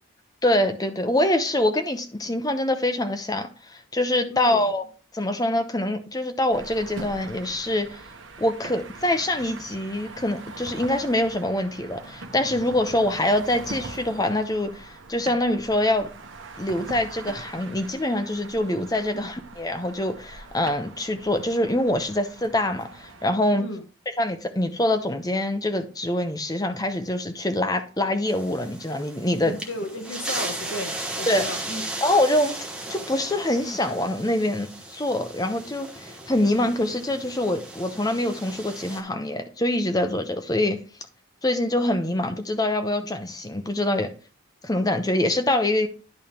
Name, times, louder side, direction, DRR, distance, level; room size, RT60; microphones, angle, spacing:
voice 1, 0.4-4.8 5.1-8.0 8.4-16.1 16.6-23.7 24.2-29.6 31.3-31.5 32.0-32.5 32.9-40.8 41.4-44.1 44.6-45.9, left 1 dB, 20° left, 0.8 m, -25 dB
voice 2, 4.3-4.7 19.1-19.3 23.6-23.8 29.4-31.8, left 1 dB, 65° left, 1.3 m, -34 dB
sound 1, 6.5-23.3, right 3 dB, 65° right, 1.1 m, -42 dB
sound 2, 28.3-39.0, right 2 dB, 5° right, 1.0 m, -36 dB
10.5 x 3.5 x 4.5 m
head